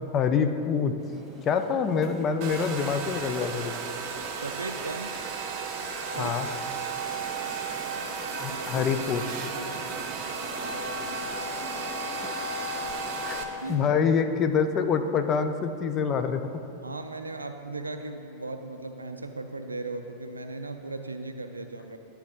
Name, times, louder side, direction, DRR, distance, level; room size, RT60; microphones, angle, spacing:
voice 1, 0.1-0.9 1.4-3.7 6.2-6.5 8.4-9.2 13.3-13.4 13.7-16.4, left 6 dB, 30° left, 8 dB, 0.4 m, -26 dB
sound 1, 1.0-13.8, right 1 dB, 15° right, 1.0 m, -46 dB
Domestic sounds home sounds, 2.4-13.4, right 4 dB, 40° right, 0.6 m, -34 dB
voice 2, 4.3-5.2 6.1-6.4 8.5-9.8 13.6-14.0 16.8-22.0, right 2 dB, 80° right, 7 dB, 0.3 m, -37 dB
10.5 x 4.4 x 3.6 m, 2.7 s
figure-of-eight pair, 90°, 0 cm